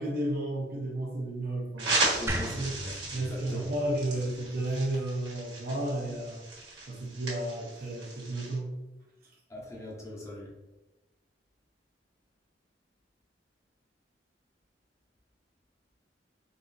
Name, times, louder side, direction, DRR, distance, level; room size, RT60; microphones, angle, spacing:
voice 1, 0.0-2.2 2.5-2.7 3.1-6.4 6.9-8.8, right 1 dB, 55° right, -1 dB, 0.9 m, -32 dB
sound 1, 1.8-8.6, right 2 dB, 75° right, 1.4 m, -35 dB
voice 2, 2.2-3.7 9.5-10.5, left 1 dB, 15° left, -3 dB, 0.7 m, -41 dB
sound 2, 2.3-5.4, right 1 dB, 15° right, 0.3 m, -38 dB
3.8 x 2.9 x 2.6 m, 1.1 s
head